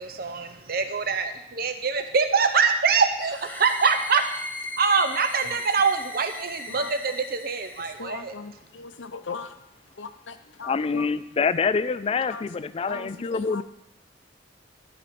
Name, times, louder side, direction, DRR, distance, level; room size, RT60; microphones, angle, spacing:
voice 1, 0.0-4.2 4.8-8.3, right 5 dB, 55° right, 8 dB, 0.8 m, -24 dB
sound 1, 3.2-8.0, left 2 dB, 10° left, 0.8 m, -37 dB
voice 2, 8.0-9.6 9.9-11.1 12.3-12.4 12.9-13.6, left 4 dB, 80° left, 10 dB, 0.7 m, -38 dB
voice 3, 10.6-13.6, left 5 dB, 30° left, 15 dB, 0.3 m, -26 dB
12.5 x 5.0 x 5.9 m, 0.87 s
head